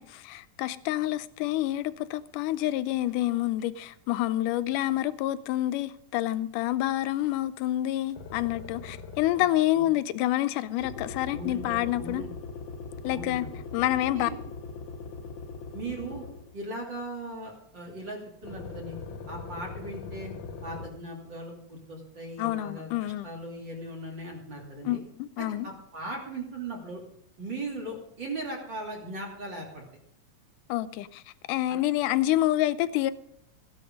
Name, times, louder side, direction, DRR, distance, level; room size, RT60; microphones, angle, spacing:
voice 1, 0.0-12.2 13.0-13.5 13.7-14.3 22.4-23.3 24.9-25.7 30.7-31.2 31.5-33.1, left 14 dB, 90° left, 2.2 m, -28 dB
sound 1, 8.1-9.6 10.8-16.6 18.4-20.9, left 4 dB, 60° left, 1.3 m, -40 dB
voice 2, 11.3-12.3 13.0-13.5 14.1-14.4 15.7-16.2 16.5-19.0 19.3-20.3 20.6-25.0 25.4-27.0 27.4-29.8 31.7-31.8, right 2 dB, 35° right, 3.2 m, -38 dB
16.0 x 10.5 x 5.3 m
omnidirectional pair, 3.6 m